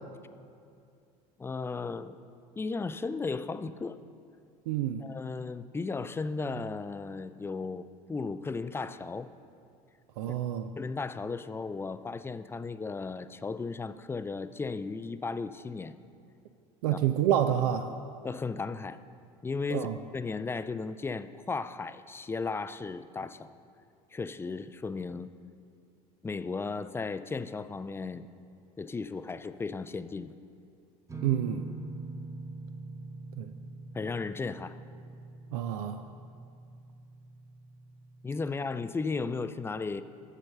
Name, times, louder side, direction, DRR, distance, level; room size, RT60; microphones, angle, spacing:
voice 1, 1.4-2.2 2.6-4.0 5.0-9.3 10.8-16.0 16.9-17.0 18.2-19.0 19.4-19.9 20.1-23.6 24.1-25.3 26.2-28.3 28.8-30.3 33.9-34.8 38.2-40.0, left 4 dB, 10° left, 0.3 m, -35 dB
voice 2, 4.7-5.0 10.2-10.7 16.8-17.9 19.7-20.0 31.2-31.6 33.4-33.5 35.5-36.0, right 11 dB, 80° right, 0.4 m, -28 dB
sound 1, 31.1-38.7, right 3 dB, 15° right, 0.8 m, -44 dB
7.4 x 6.7 x 6.5 m
hypercardioid pair, 75°, 20 cm